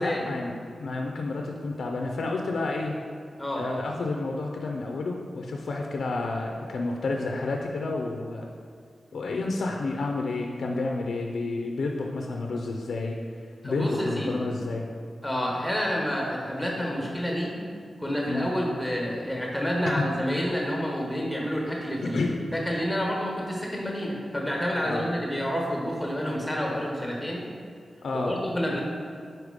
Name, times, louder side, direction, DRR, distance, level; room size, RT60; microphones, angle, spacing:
voice 1, 0.0-2.9 3.6-8.4 9.1-13.2 13.6-14.9 18.3-18.5 22.0-22.4 24.8-25.1 28.0-28.4 28.7-28.8, left 3 dB, 85° left, 1 dB, 0.4 m, -30 dB
voice 2, 13.6-14.4 15.2-17.6 18.0-27.5 28.1-28.8, equal, 5° left, -1 dB, 1.2 m, -29 dB
4.8 x 4.4 x 5.0 m, 2.3 s
wide cardioid pair, 110°, 0 cm